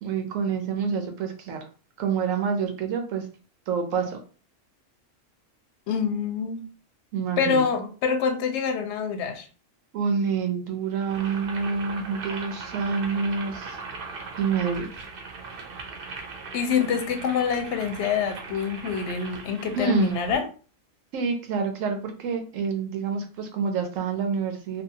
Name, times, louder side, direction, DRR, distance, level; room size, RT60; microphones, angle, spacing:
voice 1, 0.0-1.6 2.0-3.2 3.7-4.2 7.1-7.6 9.9-13.8 14.4-14.9 19.8-20.2 21.1-24.8, right 5 dB, 85° right, 5 dB, 1.0 m, -27 dB
voice 2, 5.9-6.7 7.4-9.5 16.5-20.5, left 6 dB, 70° left, 6 dB, 0.8 m, -26 dB
Boiling, 11.0-20.4, right 4 dB, 55° right, 0.7 m, -39 dB
2.7 x 2.3 x 2.7 m, 0.37 s
omnidirectional pair, 1.3 m